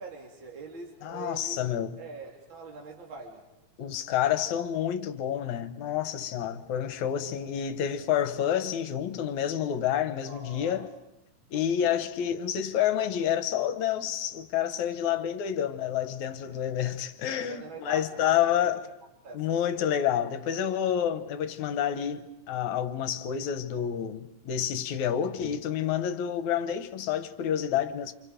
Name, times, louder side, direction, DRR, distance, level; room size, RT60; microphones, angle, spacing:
voice 1, 0.0-1.6 2.0-3.4 6.4-6.6 6.9-7.1 10.2-10.9 16.5-16.6 17.5-18.7 19.2-19.5, right 4 dB, 35° right, 3.5 m, -43 dB
voice 2, 1.0-2.0 3.8-10.9 11.5-18.8 19.3-28.1, left 9 dB, 70° left, 2.3 m, -29 dB
29.0 x 27.0 x 5.2 m
omnidirectional pair, 3.8 m